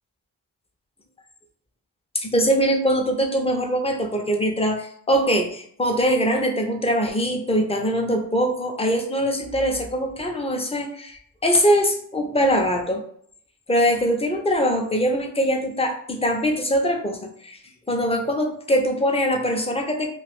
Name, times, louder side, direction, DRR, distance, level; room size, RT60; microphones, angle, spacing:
voice 1, 2.1-13.0 13.7-17.6 17.9-20.1, equal, 15° left, 2 dB, 0.7 m, -22 dB
2.4 x 2.4 x 3.5 m, 0.62 s
cardioid pair, 45°, 41 cm